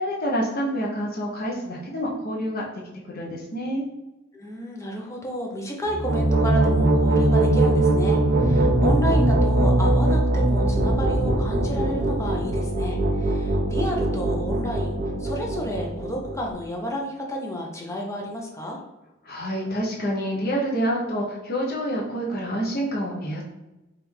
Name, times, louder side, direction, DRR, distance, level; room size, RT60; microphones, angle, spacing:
voice 1, 0.0-2.7 3.0-3.8 19.2-23.4, equal, 50° left, -2 dB, 0.7 m, -27 dB
voice 2, 4.3-18.8, equal, 15° left, -1 dB, 0.7 m, -31 dB
sound 1, 5.9-16.5, right 1 dB, 45° right, 0.6 m, -21 dB
3.5 x 2.5 x 4.4 m, 0.99 s
head